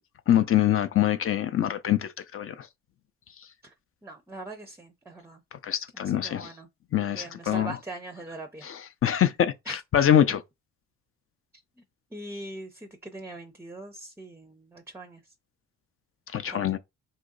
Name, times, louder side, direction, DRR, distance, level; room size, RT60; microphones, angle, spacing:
voice 1, 0.3-2.7 5.6-6.5 6.9-7.8 8.6-10.4 16.3-16.8, left 10 dB, 45° left, 0.5 m, -24 dB
voice 2, 4.0-5.4 6.2-6.7 7.1-8.7 9.7-9.8 12.1-15.2 16.5-16.7, right 2 dB, 10° right, 0.5 m, -41 dB
3.0 x 2.7 x 3.7 m
cardioid pair, 90°, 30 cm